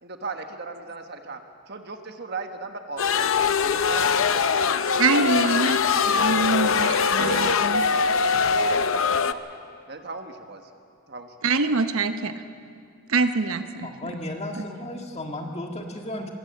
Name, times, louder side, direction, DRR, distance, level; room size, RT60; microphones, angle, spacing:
voice 1, 0.0-1.4 1.7-5.8 6.3-9.6 9.9-10.7 11.1-11.3 11.7-11.8, right 3 dB, 50° right, 6 dB, 1.4 m, -37 dB
sound 1, 3.0-9.3, left 6 dB, 70° left, 0.6 m, -22 dB
voice 2, 5.0-7.8 11.4-12.3 13.1-13.9, right 3 dB, 80° right, 9 dB, 0.9 m, -24 dB
voice 3, 13.8-16.3, left 1 dB, 30° left, 2 dB, 1.7 m, -34 dB
22.5 x 14.5 x 7.8 m, 2.4 s
head